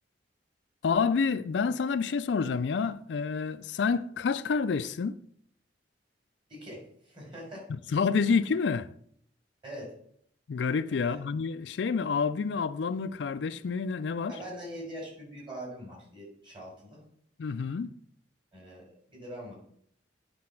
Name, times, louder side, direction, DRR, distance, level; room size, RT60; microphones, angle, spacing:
voice 1, 0.8-5.2 7.7-8.9 10.5-14.4 17.4-17.9, left 5 dB, 75° left, 0.4 m, -28 dB
voice 2, 6.5-7.7 9.6-9.9 10.9-11.2 14.3-17.0 18.5-19.5, equal, 30° right, 4.2 m, -43 dB
9.6 x 4.2 x 5.8 m
head